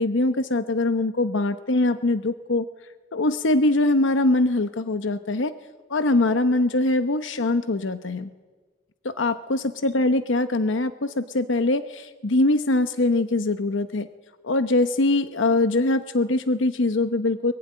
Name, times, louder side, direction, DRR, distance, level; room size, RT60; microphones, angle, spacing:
voice 1, 0.0-2.6 3.1-5.5 5.9-8.3 9.0-14.1 14.4-17.5, left 2 dB, 70° left, 11 dB, 0.9 m, -22 dB
23.0 x 23.0 x 9.9 m, 1.4 s
head